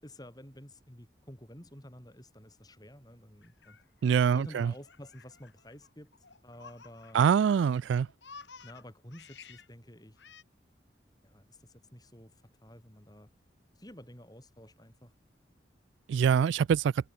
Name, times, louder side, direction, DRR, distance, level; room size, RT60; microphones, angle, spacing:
voice 1, 0.0-3.8 4.3-6.1 6.4-7.2 8.6-10.2 11.2-12.3 12.6-13.3 13.8-15.1, left 1 dB, 20° left, 6.6 m, -50 dB
Laughter, 3.4-7.5 7.8-9.7 10.2-10.4, left 5 dB, 80° left, 3.7 m, -53 dB
voice 2, 4.0-4.7 7.1-8.1 16.1-16.9, right 7 dB, 85° right, 0.3 m, -24 dB
head